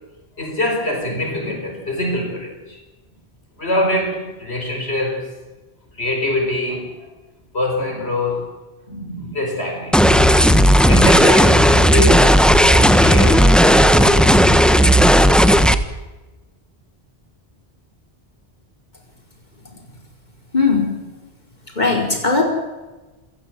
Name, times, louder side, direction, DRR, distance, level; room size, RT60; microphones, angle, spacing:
voice 1, 0.4-2.8 3.6-5.3 6.0-7.1 7.5-8.5 8.9-10.0 10.3-10.5 10.9-14.3, left 1 dB, 90° left, 4.9 m, -24 dB
sound 1, 9.9-15.7, equal, ahead, 1.2 m, -12 dB
voice 2, 20.5-20.9 21.8-22.4, left 4 dB, 45° left, 5.1 m, -17 dB
27.5 x 16.5 x 7.7 m
omnidirectional pair, 1.1 m